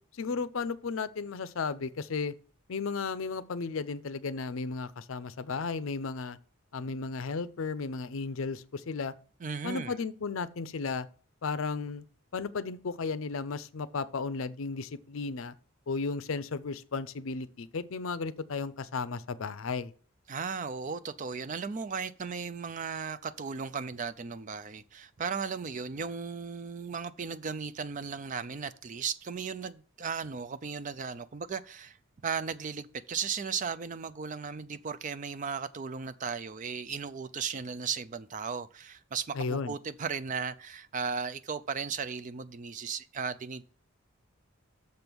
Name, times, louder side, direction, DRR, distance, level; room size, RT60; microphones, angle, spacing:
voice 1, 0.1-2.3 2.7-6.4 6.7-9.1 9.6-11.1 11.4-12.0 12.3-15.5 15.9-19.9 39.3-39.8, left 4 dB, 70° left, 0.5 m, -34 dB
voice 2, 9.4-10.0 20.3-32.0 32.2-43.6, right 6 dB, 35° right, 0.4 m, -36 dB
6.8 x 5.3 x 6.1 m
head